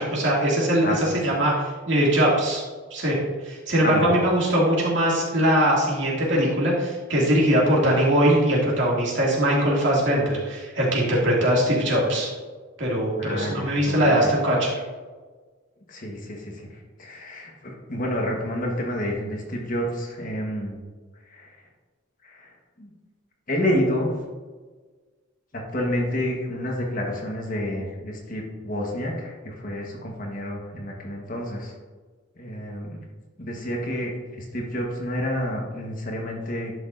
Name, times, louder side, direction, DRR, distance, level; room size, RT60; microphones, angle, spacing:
voice 1, 0.0-2.6 2.9-3.2 3.4-12.3 12.8-14.7, right 1 dB, 65° right, -4 dB, 2.4 m, -21 dB
voice 2, 3.8-4.1 13.2-14.3 15.9-20.8 21.3-21.6 22.2-22.9 23.5-24.1 25.5-31.7 32.4-33.0 33.4-36.7, left 1 dB, 45° left, 0 dB, 1.4 m, -29 dB
11.0 x 6.0 x 2.7 m, 1.4 s
head